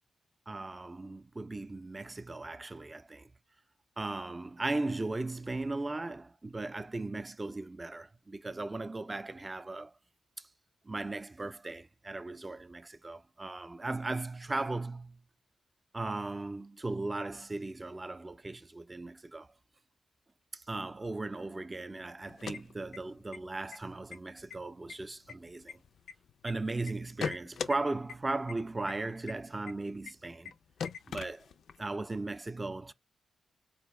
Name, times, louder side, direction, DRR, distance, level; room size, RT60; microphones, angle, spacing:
voice 1, 0.5-3.3 4.0-9.9 10.4-10.5 10.8-15.2 15.9-19.5 20.5-25.8 26.4-30.5 31.1-31.5 31.8-32.9, right 2 dB, 30° right, 0.4 m, -37 dB
sound 1, 22.2-23.4 23.7-23.8 24.1-24.6 24.9-26.5 26.9-27.8 28.1-28.2 28.5-28.6 28.9-29.0 29.3-29.4 29.7-29.8 30.1-30.2 30.5-30.6 30.8-31.8, left 6 dB, 70° left, 0.3 m, -39 dB
4.2 x 2.3 x 3.2 m
supercardioid pair, 45°, 0 cm